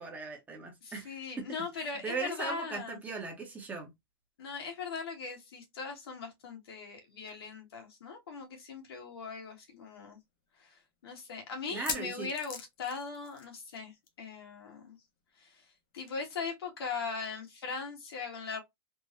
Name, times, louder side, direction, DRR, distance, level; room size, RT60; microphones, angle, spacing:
voice 1, 0.0-1.5 1.8-3.9 11.7-12.3, right 4 dB, 15° right, 0.8 m, -39 dB
voice 2, 0.8-3.0 4.4-10.2 10.6-15.0 15.4-15.6 15.9-18.6, left 5 dB, 85° left, 1.4 m, -40 dB
sound 1, 9.0-9.1 9.4-9.5 10.1-10.2 11.6-13.8 14.0-14.3 14.5-14.6 16.1-16.2, left 6 dB, 65° left, 0.8 m, -41 dB
3.5 x 2.0 x 2.8 m
supercardioid pair, 150°, 12 cm